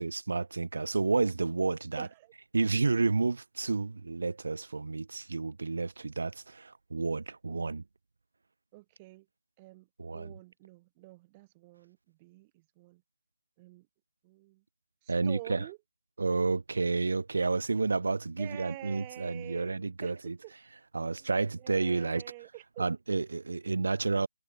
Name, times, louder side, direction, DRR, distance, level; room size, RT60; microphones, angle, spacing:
voice 1, 0.0-2.1 2.5-7.8 10.0-10.4 15.1-15.7 16.2-20.4 20.9-22.2 22.8-24.3, right 3 dB, 65° right, 5.9 m, -30 dB
voice 2, 2.0-2.3 7.5-7.7 8.7-9.3 9.6-13.0 13.6-13.9 14.2-14.6 15.0-15.8 18.4-20.1 20.4-20.5 21.2-21.3 21.6-22.9, right 21 dB, 20° right, 6.1 m, -48 dB
figure-of-eight pair, 160°, 0 cm